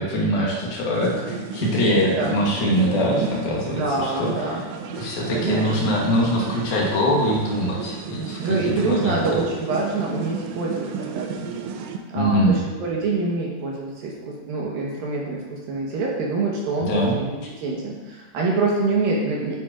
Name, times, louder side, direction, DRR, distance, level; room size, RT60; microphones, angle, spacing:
voice 1, 0.0-4.6 5.0-9.2 12.1-12.6 16.8-17.2, equal, 70° left, -3 dB, 2.3 m, -23 dB
sound 1, 0.9-12.0, right 5 dB, 90° right, 2.6 m, -32 dB
voice 2, 3.7-4.6 5.3-6.0 8.4-11.6 12.1-19.6, right 3 dB, 75° right, -3 dB, 2.2 m, -26 dB
10.5 x 9.2 x 2.5 m, 1.2 s
omnidirectional pair, 5.8 m